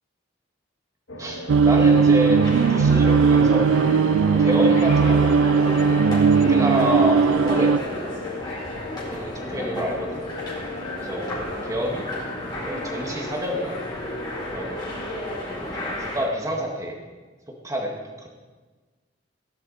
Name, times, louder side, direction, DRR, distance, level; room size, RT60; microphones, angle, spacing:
sound 1, 1.1-15.4, left 2 dB, 85° left, 1.8 m, -37 dB
voice 1, 1.2-3.7 4.4-5.4 5.9-7.9 9.1-10.2 10.9-11.3 11.6-12.1 12.6-13.8 14.5-14.8 15.4-15.6 16.0-17.0 17.6-18.3, equal, 15° right, 0 dB, 2.0 m, -28 dB
sound 2, 1.5-7.8, right 5 dB, 85° right, 0.4 m, -18 dB
sound 3, 1.6-16.3, left 1 dB, 20° left, 4.3 m, -33 dB
18.0 x 10.5 x 4.3 m, 1.4 s
head